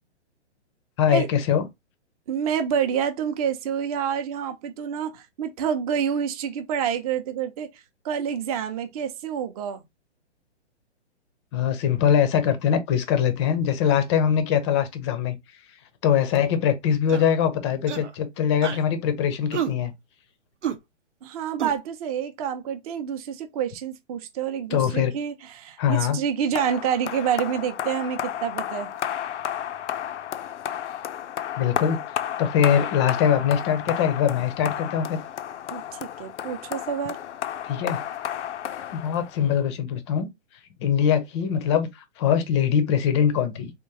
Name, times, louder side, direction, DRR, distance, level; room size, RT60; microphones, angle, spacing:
voice 1, 1.0-1.7 11.5-15.4 16.0-19.9 24.7-25.1 25.8-26.2 31.6-35.2 37.6-38.0 38.9-40.3 40.8-43.7, left 8 dB, 25° left, 0.5 m, -22 dB
voice 2, 2.3-9.8 21.2-28.9 35.7-37.2, right 8 dB, 35° right, 0.6 m, -28 dB
sound 1, 17.1-17.3 17.9-18.1 18.6-18.9 19.5-19.7 20.6-20.8 21.6-21.7, right 9 dB, 85° right, 0.8 m, -29 dB
sound 2, 26.6-39.6, left 10 dB, 75° left, 0.5 m, -32 dB
3.6 x 2.5 x 2.7 m
hypercardioid pair, 130°, 35 cm